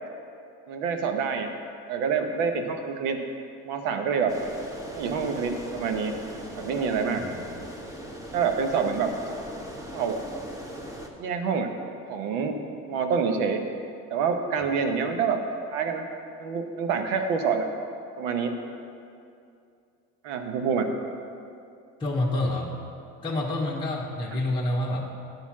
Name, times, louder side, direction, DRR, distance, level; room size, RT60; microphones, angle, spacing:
voice 1, 0.7-1.5 1.9-3.2 3.6-4.3 4.9-6.1 6.5-7.2 8.3-9.1 9.9-10.2 11.2-11.7 12.1-12.6 12.9-13.6 14.1-15.4 15.7-16.0 16.4-17.7 18.2-18.6 20.2-20.9, right 6 dB, 80° right, 5 dB, 1.0 m, -26 dB
sound 1, 4.3-11.1, equal, 10° right, 1.0 m, -40 dB
voice 2, 22.0-22.7 23.2-25.1, left 1 dB, 10° left, -4 dB, 1.0 m, -28 dB
9.9 x 4.4 x 7.2 m, 2.5 s
supercardioid pair, 100°, 38 cm